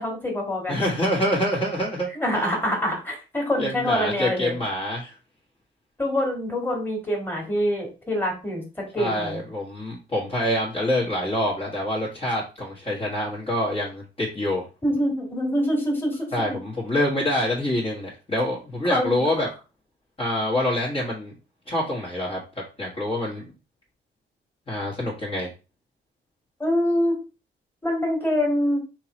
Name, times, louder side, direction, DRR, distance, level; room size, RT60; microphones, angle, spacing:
voice 1, 0.0-0.8 2.1-4.6 6.0-9.4 14.8-16.6 18.9-19.2 26.6-27.2 27.8-28.8, equal, 10° left, 0 dB, 2.2 m, -25 dB
voice 2, 0.7-2.1 3.6-5.1 9.0-14.6 16.3-19.5 20.2-21.3 21.7-23.4 24.7-25.5, left 1 dB, 30° left, -5 dB, 1.7 m, -26 dB
3.7 x 3.0 x 4.3 m, 0.31 s
cardioid pair, 90°, 20 cm